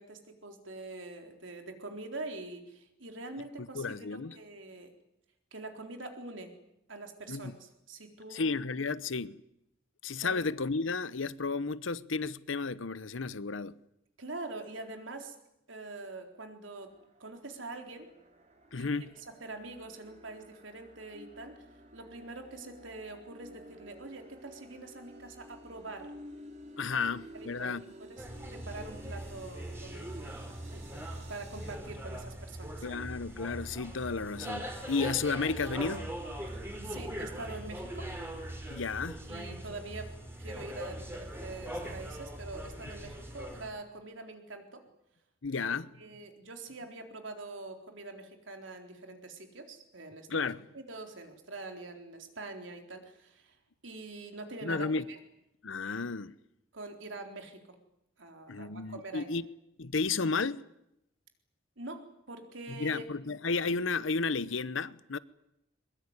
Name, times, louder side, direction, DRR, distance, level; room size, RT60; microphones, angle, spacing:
voice 1, 0.0-5.0 5.5-6.5 6.9-8.6 10.2-10.4 14.2-15.4 15.7-16.9 17.2-18.1 18.7-18.9 19.4-21.7 21.9-26.1 26.9-27.0 27.3-30.3 30.7-32.9 36.5-38.1 39.3-44.8 45.6-45.7 46.0-50.5 50.7-53.6 53.8-55.2 56.7-57.6 58.2-59.3 61.8-63.1, right 2 dB, 70° right, 4.0 m, -44 dB
voice 2, 3.6-4.3 7.3-7.5 8.3-9.4 10.0-13.7 18.7-19.1 26.8-27.8 32.8-36.2 38.7-39.2 45.4-45.9 50.3-50.6 54.6-55.1 55.6-56.3 58.5-59.4 59.8-60.7 62.7-65.2, left 4 dB, 75° left, 0.9 m, -33 dB
sound 1, 16.8-31.8, equal, 35° right, 3.3 m, -53 dB
sound 2, 28.2-43.7, right 1 dB, 10° right, 4.3 m, -41 dB
22.5 x 22.0 x 9.7 m
head